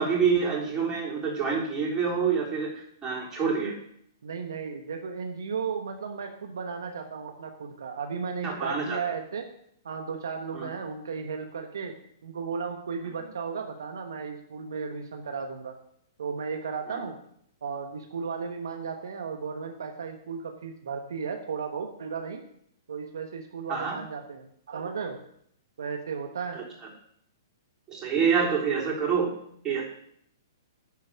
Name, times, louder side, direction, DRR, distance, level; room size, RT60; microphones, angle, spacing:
voice 1, 0.0-3.7 8.4-9.0 10.5-10.7 16.9-17.0 23.7-24.0 26.5-26.6 27.9-29.3 29.6-29.8, right 6 dB, 20° right, -3 dB, 3.7 m, -27 dB
voice 2, 4.2-9.5 9.8-11.9 12.2-15.7 16.2-17.2 17.6-22.4 22.9-25.2 25.8-26.6, right 5 dB, 75° right, 4 dB, 1.2 m, -35 dB
10.5 x 4.7 x 7.3 m, 0.68 s
hypercardioid pair, 125°, 2 cm